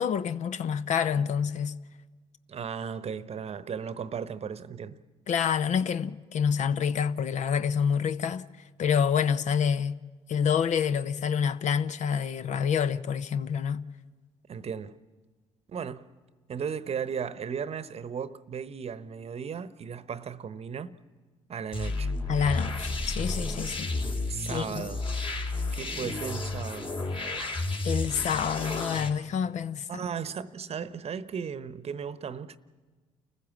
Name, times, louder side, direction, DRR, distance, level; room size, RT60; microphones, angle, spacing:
voice 1, 0.0-1.7 5.3-8.5 8.8-10.0 10.3-13.8 22.3-23.9 24.5-24.9 27.8-30.0, left 7 dB, 55° left, 0.8 m, -27 dB
voice 2, 2.5-5.0 14.5-15.0 15.7-16.1 16.5-20.9 21.5-22.1 24.3-25.0 25.7-26.9 29.9-32.6, right 7 dB, 45° right, 0.9 m, -36 dB
sound 1, 21.7-29.1, left 2 dB, 40° left, 3.2 m, -32 dB
29.5 x 15.0 x 7.3 m
hypercardioid pair, 55°, 15 cm